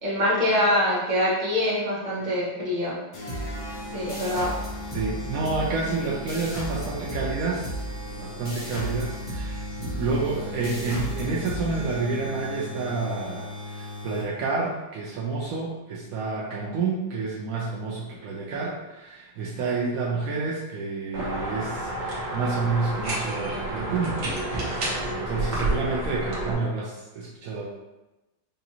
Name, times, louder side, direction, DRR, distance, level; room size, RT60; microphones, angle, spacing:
voice 1, 0.0-2.9 3.9-4.5, left 1 dB, 30° right, -7 dB, 1.0 m, -24 dB
sound 1, 3.1-14.5, left 2 dB, 60° left, 1.3 m, -38 dB
sound 2, 3.3-12.5, right 1 dB, 45° left, 0.6 m, -36 dB
voice 2, 4.9-7.8 8.2-24.2 24.6-24.7 25.1-27.7, right 4 dB, 85° right, -4 dB, 0.7 m, -29 dB
sound 3, 21.1-26.5, right 1 dB, 50° right, 0.9 m, -29 dB
5.0 x 2.7 x 2.8 m, 1.0 s
omnidirectional pair, 2.2 m